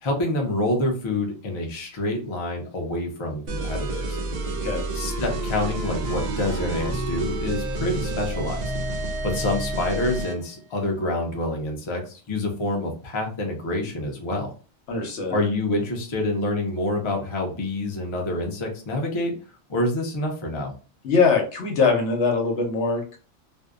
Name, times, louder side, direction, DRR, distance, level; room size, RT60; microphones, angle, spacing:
voice 1, 0.0-4.2 4.9-8.7 9.2-14.5 15.3-19.3 19.7-20.7, left 1 dB, 40° left, 1 dB, 0.4 m, -27 dB
sound 1, 3.5-10.4, right 2 dB, 65° right, 0.4 m, -29 dB
voice 2, 14.9-15.4 21.0-23.2, left 4 dB, 70° left, 3 dB, 1.0 m, -22 dB
2.6 x 2.1 x 2.3 m, 0.36 s
omnidirectional pair, 1.2 m